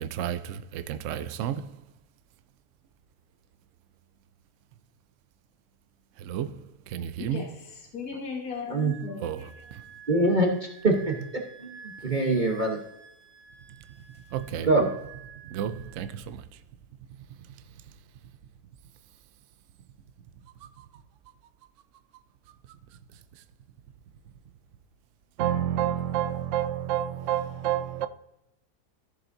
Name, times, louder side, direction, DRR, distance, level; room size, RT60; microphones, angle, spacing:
voice 1, 0.0-1.6 6.3-6.5 6.9-7.4 9.2-9.4 14.3-14.7 15.5-16.4 25.4-28.1, right 10 dB, 65° right, 0.8 m, -30 dB
voice 2, 7.2-9.3, left 5 dB, 65° left, 2.0 m, -37 dB
Wind instrument woodwind instrument, 8.7-16.2, right 5 dB, ahead, 1.7 m, -50 dB
voice 3, 10.1-10.6 10.8-11.2 11.6-12.8 14.6-14.9, right 2 dB, 30° right, 1.1 m, -23 dB
14.5 x 7.0 x 2.7 m
omnidirectional pair, 1.8 m